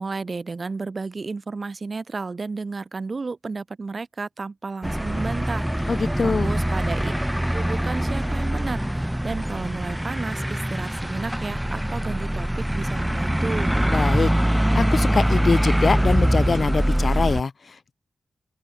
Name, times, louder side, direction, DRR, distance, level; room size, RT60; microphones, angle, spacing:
voice 1, 0.0-5.9 6.2-7.1 7.5-13.7, right 4 dB, 50° right, 2.1 m, -32 dB
sound 1, 4.8-17.4, equal, 5° right, 2.8 m, -23 dB
voice 2, 5.9-6.5 13.9-14.3 14.6-17.9, left 4 dB, 55° left, 0.9 m, -24 dB
open air
cardioid pair, 55°, 0 cm